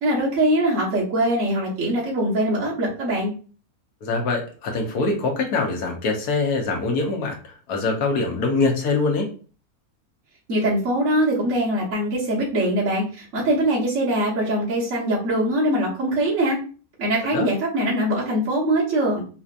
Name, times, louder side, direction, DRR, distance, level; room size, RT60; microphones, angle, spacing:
voice 1, 0.0-3.3 10.5-16.6 17.0-19.2, right 1 dB, 55° right, -6 dB, 1.5 m, -22 dB
voice 2, 4.0-9.3 17.3-17.5, left 3 dB, 85° left, 2 dB, 1.4 m, -24 dB
4.1 x 2.8 x 2.4 m, 0.38 s
omnidirectional pair, 1.6 m